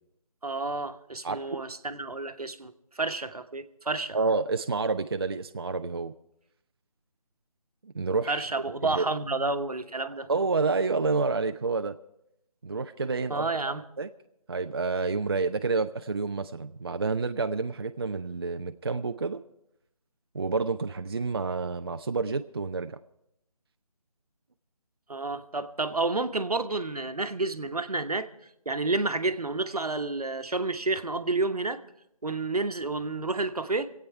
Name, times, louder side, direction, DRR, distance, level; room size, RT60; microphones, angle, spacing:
voice 1, 0.4-4.2 8.3-10.3 13.3-13.8 25.1-28.3 28.6-31.8 32.2-33.9, right 3 dB, 80° right, 9 dB, 1.1 m, -30 dB
voice 2, 1.2-1.7 4.1-6.1 7.8-8.4 8.8-9.1 10.3-12.0 12.6-14.1 14.5-19.4 20.3-23.0, right 4 dB, 40° right, 8 dB, 0.4 m, -29 dB
25.5 x 8.6 x 4.6 m, 0.81 s
figure-of-eight pair, 160°, 19 cm